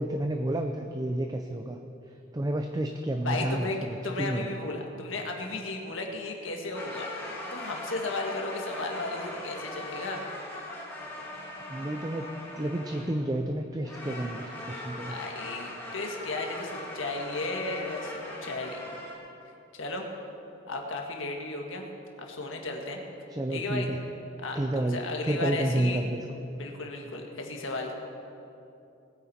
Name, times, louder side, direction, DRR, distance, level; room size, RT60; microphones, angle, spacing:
voice 1, 0.0-1.8 2.3-4.5 11.7-12.3 12.5-15.2 23.3-24.0 24.5-25.0 25.2-26.2, right 1 dB, 20° right, 5 dB, 0.5 m, -30 dB
voice 2, 3.2-3.8 4.0-7.1 7.5-10.2 15.1-18.1 18.4-18.8 19.8-20.1 20.7-21.8 22.2-23.0 23.5-23.9 24.4-26.0 26.5-27.9, left 2 dB, 70° left, 1 dB, 1.7 m, -34 dB
sound 1, 6.7-13.3 13.8-19.2, left 1 dB, 10° left, 2.1 m, -40 dB
19.5 x 9.2 x 4.3 m, 2.8 s
head